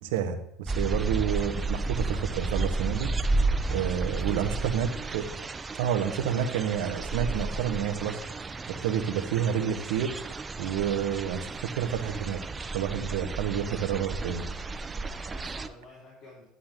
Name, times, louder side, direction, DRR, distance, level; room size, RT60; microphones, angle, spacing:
voice 1, 0.0-3.1 3.7-5.3 5.8-8.2 8.7-10.2 10.6-12.4 12.7-14.4, right 9 dB, 80° right, 8 dB, 1.4 m, -29 dB
sound 1, 0.7-15.7, right 3 dB, 25° right, 0.8 m, -32 dB
voice 2, 3.5-4.7 15.0-16.5, left 2 dB, 60° left, -5 dB, 4.4 m, -50 dB
12.0 x 11.5 x 3.8 m, 0.75 s
supercardioid pair, 85°, 0 cm